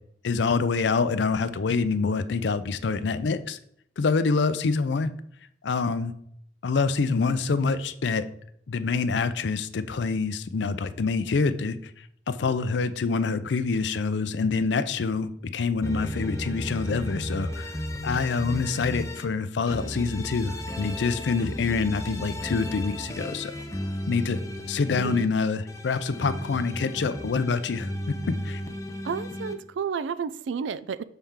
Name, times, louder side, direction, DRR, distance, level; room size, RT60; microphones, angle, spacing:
voice 1, 0.2-3.6 4.0-5.1 5.6-6.1 6.6-8.3 8.7-11.8 12.3-17.7 18.0-23.5 24.0-24.4 24.7-28.6, left 4 dB, 65° left, 13 dB, 0.5 m, -26 dB
sound 1, 15.8-19.2 19.7-25.2 25.7-29.5, left 1 dB, 15° left, 0.6 m, -34 dB
voice 2, 25.0-25.3 29.0-31.0, right 6 dB, 75° right, 16 dB, 0.4 m, -31 dB
6.8 x 4.4 x 3.6 m, 0.70 s
head